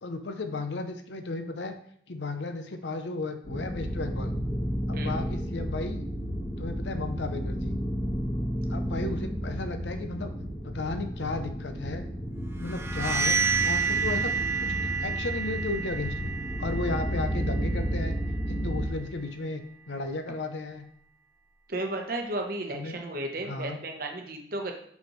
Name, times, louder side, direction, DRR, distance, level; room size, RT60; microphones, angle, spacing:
voice 1, 0.0-1.7 2.1-4.3 4.9-6.0 6.6-7.8 8.7-10.3 10.6-12.1 12.6-14.3 14.6-16.3 16.6-18.2 18.5-20.8 22.7-23.0 23.4-23.8, left 3 dB, 70° left, 7 dB, 0.7 m, -34 dB
sound 1, 3.4-18.9, equal, 20° left, 1.5 m, -32 dB
sound 2, 12.6-18.3, right 5 dB, 15° right, 0.5 m, -30 dB
voice 2, 21.7-24.7, right 2 dB, 50° right, 2 dB, 0.9 m, -33 dB
6.2 x 5.3 x 3.1 m, 0.63 s
head